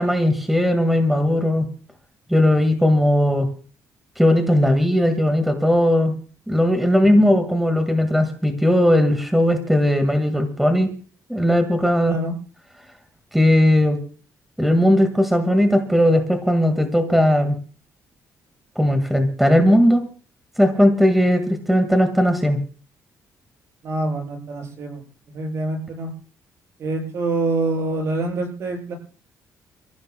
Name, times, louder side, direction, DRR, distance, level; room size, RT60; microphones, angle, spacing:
voice 1, 0.0-1.6 2.3-3.5 4.2-6.1 6.5-10.9 11.3-12.2 13.3-14.0 14.6-17.6 18.8-20.0 20.6-22.6, left 1 dB, ahead, 7 dB, 1.9 m, -18 dB
voice 2, 23.8-26.1 26.8-29.0, right 2 dB, 50° right, 3 dB, 7.8 m, -26 dB
30.0 x 15.5 x 2.3 m, 0.41 s
cardioid pair, 160°, 6 cm